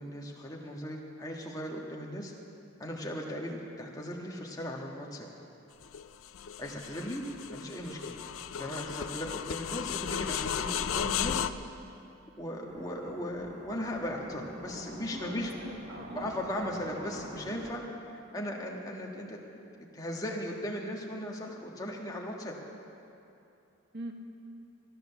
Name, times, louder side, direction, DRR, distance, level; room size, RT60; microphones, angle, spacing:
voice 1, 0.0-2.3 2.8-5.3 6.6-7.2 7.5-8.2 8.5-11.4 12.4-15.5 16.1-17.8 18.3-19.4 19.9-22.6, equal, 20° left, -1 dB, 1.5 m, -37 dB
sound 1, 5.8-11.5, left 9 dB, 80° left, 0.4 m, -35 dB
sound 2, 12.7-17.7, equal, 30° right, 1.5 m, -45 dB
voice 2, 15.1-16.3 23.9-24.1, right 1 dB, 55° right, 3 dB, 1.2 m, -42 dB
14.5 x 11.0 x 7.0 m, 2.7 s
head